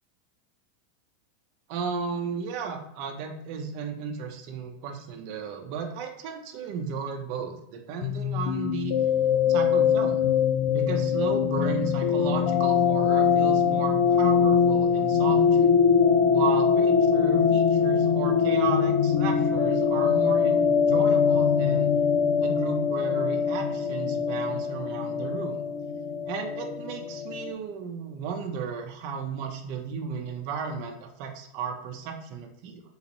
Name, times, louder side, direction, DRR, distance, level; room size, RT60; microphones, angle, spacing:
voice 1, 1.7-8.9 9.5-10.2 10.7-15.7 16.3-21.9 22.4-25.6 26.2-32.8, right 6 dB, 55° right, 3 dB, 0.7 m, -34 dB
sound 1, 8.0-27.5, left 6 dB, 70° left, 0.5 m, -23 dB
4.0 x 2.8 x 4.0 m, 0.77 s
supercardioid pair, 125°, 0 cm